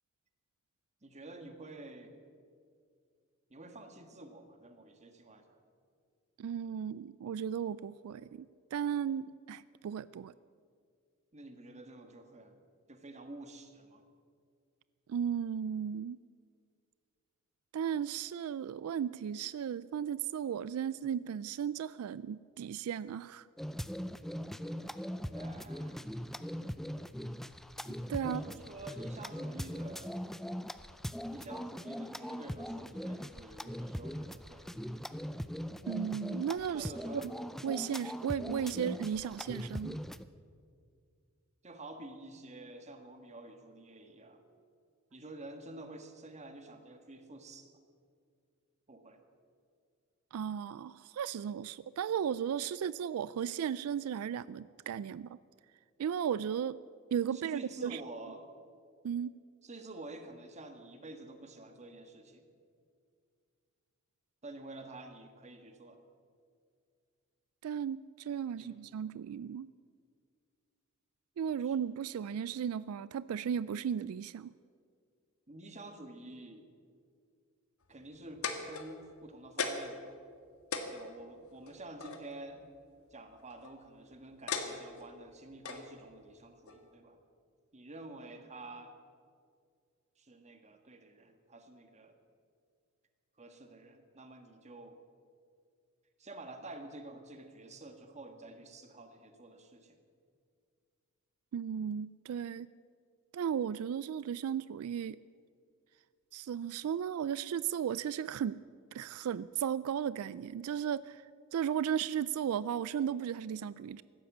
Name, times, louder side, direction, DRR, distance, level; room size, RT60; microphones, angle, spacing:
voice 1, 1.0-2.1 3.5-5.6 11.3-12.6 12.9-14.0 25.3-26.1 28.2-30.1 31.3-34.7 36.7-37.3 41.6-44.4 45.1-47.7 48.9-49.2 57.3-58.5 59.6-62.4 64.4-66.0 68.6-68.8 71.6-71.7 75.5-76.7 77.9-80.2 80.9-82.6 83.1-87.2 87.7-88.9 90.2-92.1 93.4-95.0 96.2-100.0, right 2 dB, 35° right, 7 dB, 1.5 m, -49 dB
voice 2, 6.4-10.3 15.1-16.2 17.7-23.5 28.1-28.4 35.9-36.9 37.6-40.0 50.3-55.4 56.0-56.8 57.1-58.0 59.0-59.4 67.6-69.7 71.4-74.5 101.5-102.7 103.3-105.2 106.3-108.6 108.9-111.2 111.5-114.0, right 8 dB, 90° right, 18 dB, 0.3 m, -35 dB
sound 1, 23.6-40.2, equal, ahead, 0.4 m, -41 dB
sound 2, 78.1-79.2 79.6-80.0 80.4-80.5 80.7-82.2 83.3-83.7 84.5-85.1 85.6-85.9 86.7-86.8, left 5 dB, 90° left, 1.6 m, -37 dB
16.0 x 12.5 x 7.2 m, 2.2 s
head